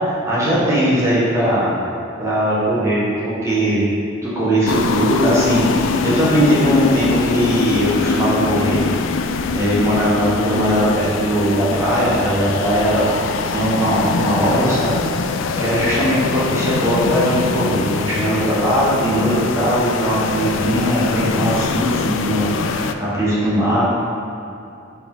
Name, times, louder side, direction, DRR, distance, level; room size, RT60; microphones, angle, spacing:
voice 1, 0.0-1.7 2.2-3.9 4.2-8.8 9.5-13.1 13.5-15.0 15.6-23.8, equal, 15° right, -9 dB, 1.4 m, -19 dB
sound 1, 4.7-22.9, left 5 dB, 75° left, 0.4 m, -23 dB
5.1 x 5.0 x 5.5 m, 2.6 s
head